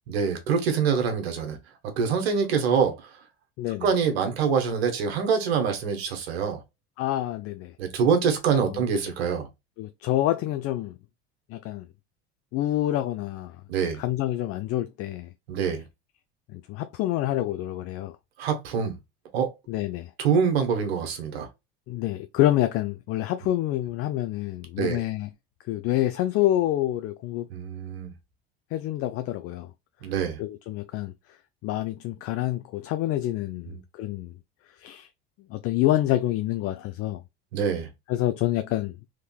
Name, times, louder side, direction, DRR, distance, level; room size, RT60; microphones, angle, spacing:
voice 1, 0.1-1.6 1.8-3.2 3.8-6.6 7.8-9.5 13.7-14.0 15.5-15.8 18.4-18.9 19.3-19.5 20.2-21.5 24.8-25.0 27.5-28.1 30.0-30.4 33.7-33.8 37.5-37.9, right 6 dB, 85° right, 1.1 m, -25 dB
voice 2, 7.0-7.7 8.7-8.8 9.8-10.9 11.5-11.9 12.5-13.6 14.0-15.3 16.5-18.1 19.7-20.1 21.9-25.3 25.7-27.5 28.7-29.7 30.4-31.1 31.6-34.3 34.8-35.1 35.5-37.2 38.1-39.0, left 14 dB, 50° left, 0.4 m, -27 dB
3.6 x 3.1 x 2.3 m
hypercardioid pair, 85°, 31 cm